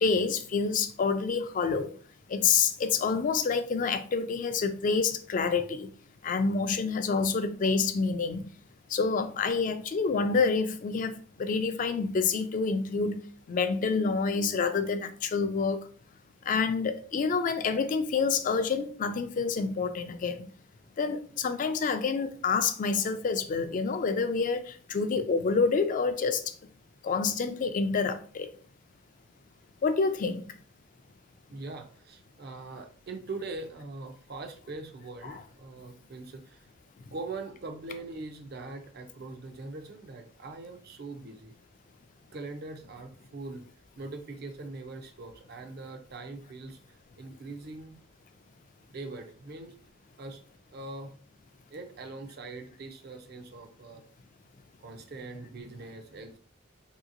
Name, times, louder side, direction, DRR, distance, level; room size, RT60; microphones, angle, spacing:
voice 1, 0.0-1.9 2.3-5.9 6.2-8.4 8.9-11.1 11.4-13.2 13.5-15.8 16.5-20.4 21.0-24.6 24.9-26.4 27.0-28.5 29.8-30.4 35.2-35.4, left 5 dB, 40° left, 0.3 m, -27 dB
voice 2, 31.5-36.7 37.1-41.5 42.3-43.6 44.0-48.0 48.9-49.7 50.2-50.4 50.7-51.1 51.7-54.0 54.8-56.4, right 3 dB, 55° right, 0.5 m, -42 dB
3.1 x 2.8 x 2.5 m
head